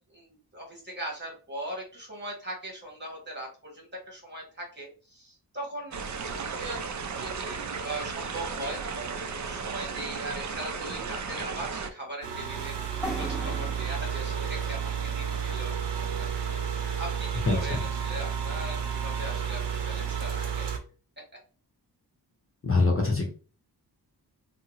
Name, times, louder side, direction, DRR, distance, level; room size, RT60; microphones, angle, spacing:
voice 1, 0.1-6.0 6.5-15.7 16.2-16.3 16.5-20.7, right 1 dB, 25° right, -1 dB, 1.5 m, -40 dB
sound 1, 5.9-11.9, right 5 dB, 45° right, 0.4 m, -35 dB
sound 2, 12.2-20.8, right 7 dB, 85° right, 0.7 m, -31 dB
sound 3, 13.0-16.7, equal, ahead, 1.3 m, -41 dB
voice 2, 17.5-17.8 22.6-23.3, left 3 dB, 30° left, 0 dB, 0.7 m, -24 dB
3.5 x 2.1 x 2.9 m, 0.37 s
wide cardioid pair, 95°, 41 cm